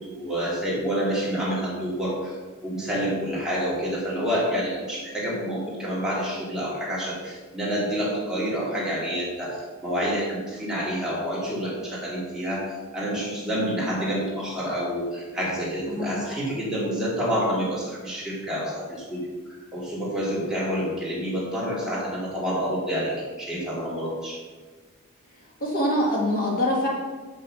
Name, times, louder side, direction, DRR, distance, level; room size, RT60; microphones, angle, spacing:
voice 1, 0.0-2.3 2.6-12.6 12.9-19.2 19.7-24.4, equal, 5° right, -7 dB, 2.8 m, -28 dB
voice 2, 25.6-26.9, left 1 dB, 40° left, -4 dB, 2.0 m, -24 dB
7.6 x 6.6 x 6.3 m, 1.3 s
head